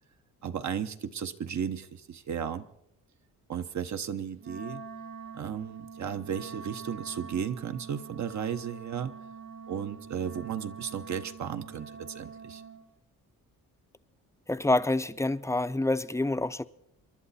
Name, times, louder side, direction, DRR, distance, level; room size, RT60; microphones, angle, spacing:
voice 1, 0.4-2.6 3.5-4.8 5.3-9.1 9.7-12.6, right 8 dB, 55° right, 1.0 m, -34 dB
Wind instrument woodwind instrument, 4.4-12.8, right 5 dB, 85° right, 7.0 m, -45 dB
voice 2, 14.5-16.6, left 2 dB, 10° left, 0.6 m, -27 dB
28.0 x 11.5 x 4.2 m
cardioid pair, 85°, 34 cm